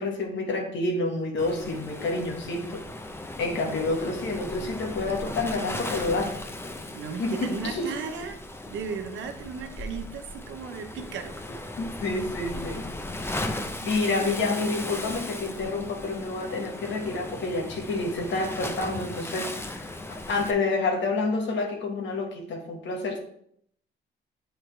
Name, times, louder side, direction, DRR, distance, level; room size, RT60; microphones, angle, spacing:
voice 1, 0.0-2.8 3.4-6.4 7.2-7.9 11.8-12.9 13.5-23.2, left 3 dB, 70° left, 2 dB, 1.6 m, -29 dB
Waves surf, 1.4-20.5, left 1 dB, 10° left, 0.6 m, -37 dB
voice 2, 6.9-8.4 8.7-11.7, right 6 dB, 75° right, 5 dB, 1.0 m, -36 dB
7.9 x 4.4 x 3.3 m, 0.68 s
cardioid pair, 90°, 20 cm